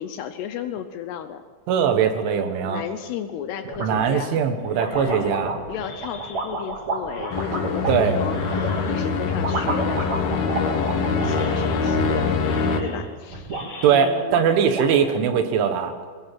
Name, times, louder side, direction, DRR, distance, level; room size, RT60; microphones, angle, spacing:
voice 1, 0.0-1.4 2.6-4.4 5.7-13.5 13.9-14.4, left 9 dB, 75° left, 9 dB, 2.6 m, -33 dB
voice 2, 1.7-2.8 3.8-5.5 7.9-8.2 13.8-15.9, right 7 dB, 80° right, 7 dB, 4.0 m, -21 dB
sound 1, 3.6-4.2 4.6-8.8 9.3-12.5 12.8-13.7 14.0-14.1 14.3-15.1, right 3 dB, 40° right, 4.2 m, -31 dB
sound 2, 4.7-6.7 7.1-9.5 9.8-10.7 11.1-12.1 12.4-14.1, left 3 dB, 40° left, 2.5 m, -39 dB
sound 3, 7.3-12.8, left 4 dB, 60° left, 3.3 m, -24 dB
22.5 x 20.5 x 7.6 m, 1.5 s
omnidirectional pair, 5.5 m